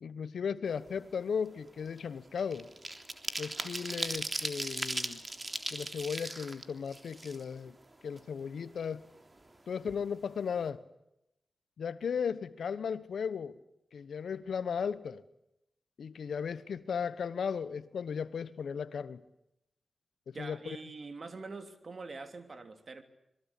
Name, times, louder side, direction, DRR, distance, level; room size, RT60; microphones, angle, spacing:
voice 1, 0.0-2.7 3.4-5.2 5.7-7.8 8.0-9.0 9.7-10.8 11.8-13.5 13.9-15.2 16.0-19.2 20.3-20.8, left 6 dB, 85° left, 16 dB, 1.1 m, -36 dB
sound 1, 0.8-1.0 1.4-7.8 8.2-8.3 8.6-9.6 9.9-10.0 10.3-10.6, right 2 dB, 35° right, 3.5 m, -38 dB
voice 2, 20.3-23.0, right 3 dB, 55° right, 9 dB, 3.2 m, -44 dB
26.5 x 22.0 x 8.4 m, 0.84 s
cardioid pair, 45°, 0 cm